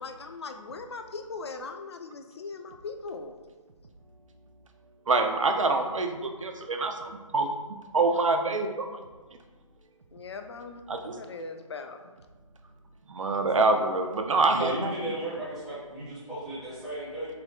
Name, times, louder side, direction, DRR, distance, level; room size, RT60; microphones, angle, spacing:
voice 1, 0.0-3.4 10.1-12.0, left 4 dB, 50° left, 6 dB, 0.4 m, -40 dB
voice 2, 5.1-7.5 7.9-8.9 10.9-11.2 13.1-14.9, right 3 dB, 65° right, 5 dB, 0.5 m, -25 dB
voice 3, 14.5-17.3, right 1 dB, ahead, -11 dB, 0.6 m, -35 dB
3.8 x 3.0 x 3.2 m, 1.3 s
figure-of-eight pair, 150°, 18 cm